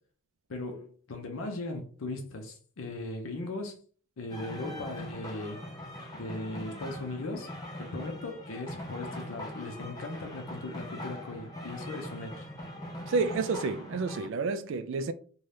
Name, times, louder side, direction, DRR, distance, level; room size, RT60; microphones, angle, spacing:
voice 1, 0.5-3.8 4.2-5.6 6.1-7.5 7.8-12.5, left 2 dB, 65° left, 0.5 m, -38 dB
sound 1, 4.3-14.3, left 1 dB, 15° left, 0.5 m, -42 dB
voice 2, 13.1-15.1, right 4 dB, 60° right, 0.3 m, -30 dB
2.6 x 2.2 x 3.3 m
head